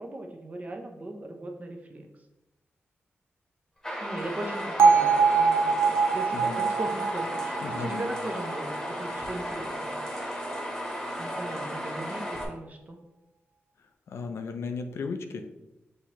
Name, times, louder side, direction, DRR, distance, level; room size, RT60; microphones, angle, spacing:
voice 1, 0.0-2.1 4.0-10.0 11.2-13.0, right 1 dB, 35° right, 4 dB, 0.7 m, -38 dB
sound 1, 3.8-12.4, equal, 10° left, 1.1 m, -34 dB
Bell, 4.8-8.9, right 5 dB, 70° right, 0.6 m, -23 dB
voice 2, 6.3-6.7 7.6-8.1 14.1-15.5, left 4 dB, 80° left, 6 dB, 0.5 m, -35 dB
6.0 x 2.9 x 2.9 m, 0.97 s
cardioid pair, 80°, 4 cm